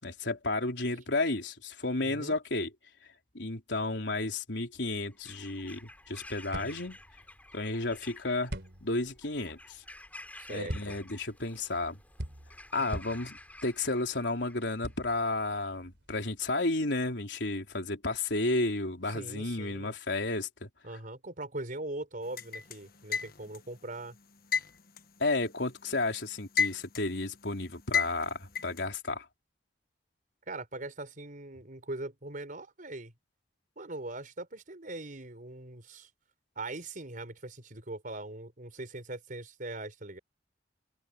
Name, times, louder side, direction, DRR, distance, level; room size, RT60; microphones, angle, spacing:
voice 1, 0.0-2.7 3.3-7.0 7.5-8.5 8.8-9.8 10.5-12.0 12.7-20.7 25.2-29.3, left 2 dB, 80° left, 3.9 m, -32 dB
voice 2, 2.0-2.4 10.4-11.0 19.1-19.9 20.8-24.2 30.5-33.1 33.8-36.1 36.6-40.2, right 2 dB, 50° right, 4.7 m, -41 dB
Bird vocalization bird call bird song / Crow, 5.1-15.0, left 2 dB, 10° left, 6.4 m, -51 dB
sound 1, 5.8-16.5, equal, 70° right, 4.1 m, -45 dB
sound 2, 22.4-23.7 24.5-25.9 26.3-27.2 27.9-28.8, left 6 dB, 55° left, 1.4 m, -31 dB
open air
head